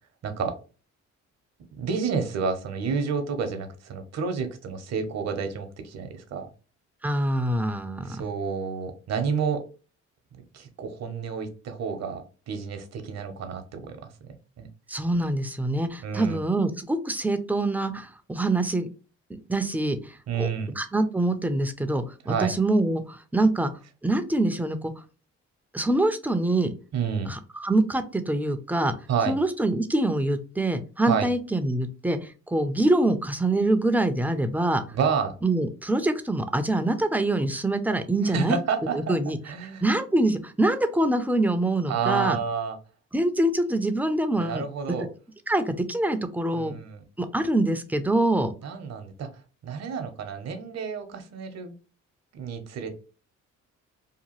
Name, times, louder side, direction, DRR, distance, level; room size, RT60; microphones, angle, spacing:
voice 1, 0.2-0.6 1.7-6.5 8.0-9.6 10.5-14.1 14.6-14.7 16.0-16.4 20.3-20.7 22.2-22.5 26.9-27.3 29.1-29.4 31.1-31.3 34.9-35.4 38.2-39.2 39.4-39.8 41.9-42.8 44.4-45.1 46.5-47.0 48.6-49.3 49.6-51.7 52.3-52.9, right 6 dB, 60° right, 8 dB, 0.7 m, -29 dB
voice 2, 7.0-8.2 14.9-18.9 19.5-20.5 20.8-23.7 24.0-24.9 25.7-26.7 27.3-28.9 29.3-34.8 35.4-38.6 38.9-39.4 39.8-42.4 43.1-44.6 45.5-46.8 47.2-48.5, right 2 dB, 5° right, 9 dB, 0.3 m, -25 dB
2.8 x 2.3 x 2.9 m, 0.35 s
cardioid pair, 90°, 30 cm